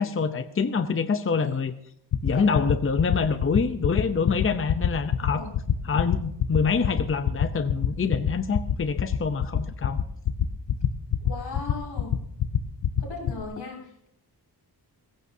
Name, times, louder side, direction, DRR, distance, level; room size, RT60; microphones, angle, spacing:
voice 1, 0.0-1.7 2.2-5.4 5.8-10.0, left 5 dB, 30° left, 9 dB, 0.7 m, -26 dB
sound 1, 2.1-13.4, left 10 dB, 70° left, 0.9 m, -23 dB
voice 2, 2.3-2.6 5.2-5.5 11.2-12.2 13.0-14.1, left 4 dB, 90° left, -2 dB, 6.0 m, -38 dB
21.0 x 17.0 x 2.7 m, 0.73 s
wide cardioid pair, 150°, 41 cm